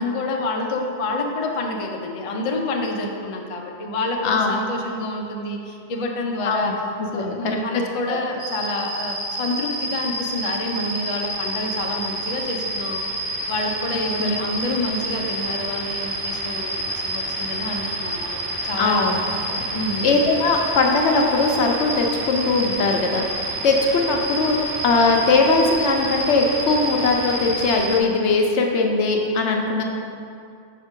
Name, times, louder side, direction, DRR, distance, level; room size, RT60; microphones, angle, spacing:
voice 1, 0.0-6.8 7.1-13.0 13.5-19.1 19.7-20.1, left 2 dB, 40° left, 1 dB, 0.5 m, -28 dB
voice 2, 7.0-8.2 14.2-14.4 18.8-19.2 19.5-19.6 20.0-24.6 24.8-29.8, left 3 dB, 70° left, 2 dB, 1.0 m, -20 dB
sound 1, 8.4-28.0, right 1 dB, 35° right, 0.8 m, -28 dB
6.5 x 5.2 x 3.7 m, 2.4 s
omnidirectional pair, 1.2 m